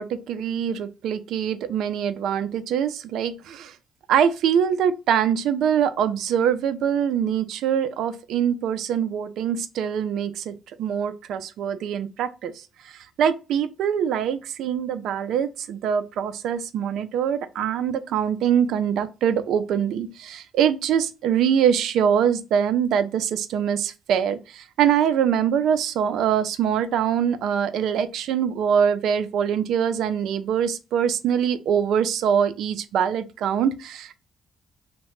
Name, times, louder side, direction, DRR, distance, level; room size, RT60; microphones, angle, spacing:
voice 1, 0.0-3.7 4.1-12.5 12.8-34.2, right 8 dB, 80° right, 0.4 m, -23 dB
2.8 x 2.1 x 3.0 m
cardioid pair, 90°, 0 cm